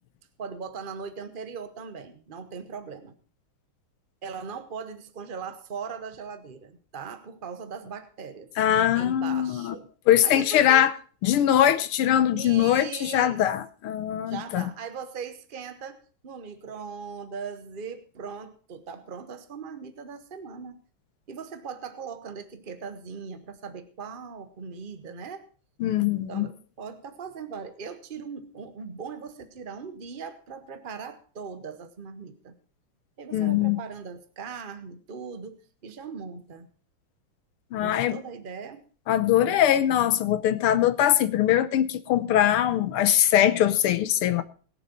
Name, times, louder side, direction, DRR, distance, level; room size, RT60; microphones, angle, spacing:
voice 1, 0.4-3.2 4.2-8.5 8.9-9.9 10.2-10.9 11.8-11.9 12.4-13.4 14.2-20.8 21.3-25.4 26.3-32.6 33.2-36.7 37.8-38.9, right 5 dB, 50° right, 0.6 m, -39 dB
voice 2, 8.6-9.7 10.1-10.9 11.2-14.7 25.8-26.5 33.3-33.8 37.7-38.2 39.1-44.4, left 11 dB, 85° left, 1.8 m, -22 dB
21.5 x 7.3 x 4.2 m
omnidirectional pair, 2.4 m